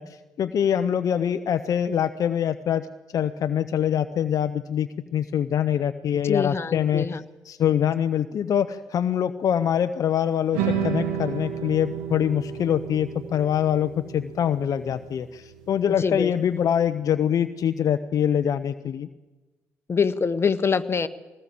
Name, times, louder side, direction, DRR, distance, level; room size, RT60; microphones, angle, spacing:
voice 1, 0.0-2.9 3.1-7.1 7.4-19.1, left 9 dB, 55° left, 9 dB, 0.8 m, -24 dB
voice 2, 6.3-7.2 16.0-16.3 19.9-21.1, left 5 dB, 35° left, 10 dB, 1.4 m, -24 dB
sound 1, 10.5-16.8, right 7 dB, 85° right, 2.9 m, -32 dB
22.0 x 18.5 x 7.8 m, 1.2 s
hypercardioid pair, 50°, 7 cm